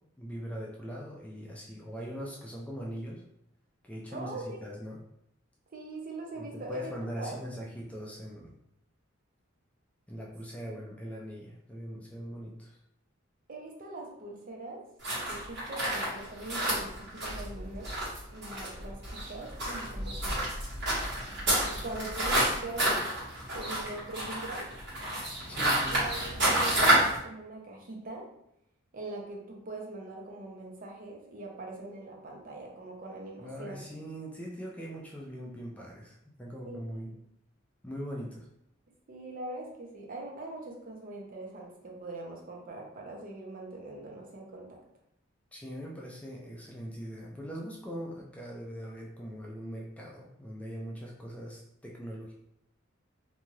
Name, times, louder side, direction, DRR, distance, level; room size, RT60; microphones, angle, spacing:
voice 1, 0.2-3.2 3.8-5.0 6.4-8.5 10.1-12.8 25.5-26.0 33.4-37.1 37.8-38.5 45.5-52.3, equal, 5° left, -2 dB, 0.4 m, -41 dB
voice 2, 4.1-4.6 5.7-7.4 10.6-10.7 13.5-14.8 15.3-17.9 18.3-20.5 21.6-23.0 23.5-24.7 25.8-28.3 28.9-33.8 36.6-37.1 39.1-44.8, right 2 dB, 45° right, -1 dB, 0.7 m, -42 dB
sound 1, 15.0-27.2, right 1 dB, 60° right, 1.4 m, -29 dB
2.7 x 2.3 x 3.1 m, 0.77 s
head